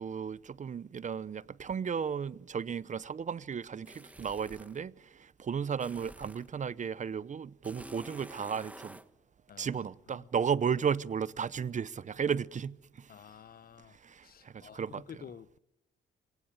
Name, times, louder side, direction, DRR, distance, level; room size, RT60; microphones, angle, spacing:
voice 1, 0.0-9.0 9.6-13.1 13.9-15.2, right 7 dB, 40° right, 0.8 m, -34 dB
sound 1, 3.9-4.8 5.8-6.5 7.6-9.1, right 1 dB, 5° right, 1.3 m, -49 dB
voice 2, 9.5-9.8 13.1-14.0 14.2-15.6, left 8 dB, 50° left, 0.8 m, -50 dB
27.5 x 17.5 x 8.9 m
cardioid pair, 90°, 20 cm